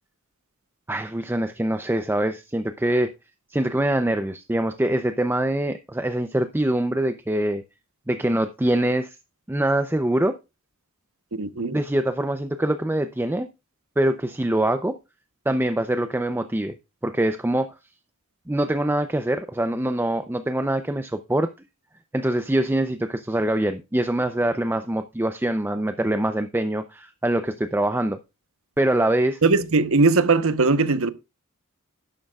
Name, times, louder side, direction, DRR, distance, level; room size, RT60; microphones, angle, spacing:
voice 1, 0.9-3.1 3.5-7.6 8.1-9.2 9.5-10.4 11.7-13.5 14.0-15.0 15.5-16.7 17.0-17.7 18.5-21.5 22.1-28.2 28.8-29.4, right 1 dB, 10° right, 0.5 m, -24 dB
voice 2, 11.4-11.8 29.4-31.1, right 3 dB, 70° right, 1.0 m, -19 dB
11.5 x 11.5 x 2.4 m
head